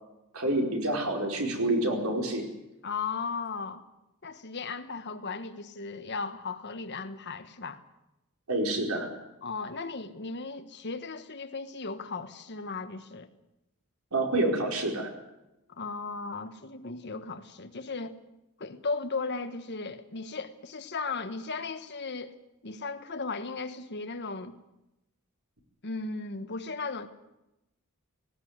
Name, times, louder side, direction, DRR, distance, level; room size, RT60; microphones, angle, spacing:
voice 1, 0.3-2.4 8.5-9.1 14.1-15.1, right 1 dB, 80° right, 4.7 m, -28 dB
voice 2, 2.8-3.8 4.2-7.8 9.4-13.3 15.7-18.2 18.6-22.3 22.6-24.5 25.8-27.1, left 4 dB, 50° left, 1.4 m, -36 dB
18.5 x 18.0 x 9.5 m
head